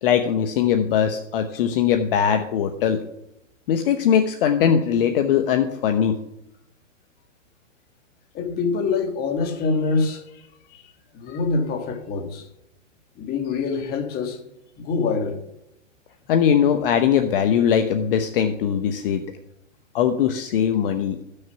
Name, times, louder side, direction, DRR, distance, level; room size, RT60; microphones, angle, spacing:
voice 1, 0.0-3.0 3.7-6.2 16.3-19.2 19.9-21.2, left 8 dB, 45° left, 1.0 m, -20 dB
voice 2, 8.3-12.5 13.1-14.4 14.8-15.4, left 4 dB, 25° left, 1.6 m, -25 dB
14.0 x 6.6 x 5.8 m
hypercardioid pair, 140°, 38 cm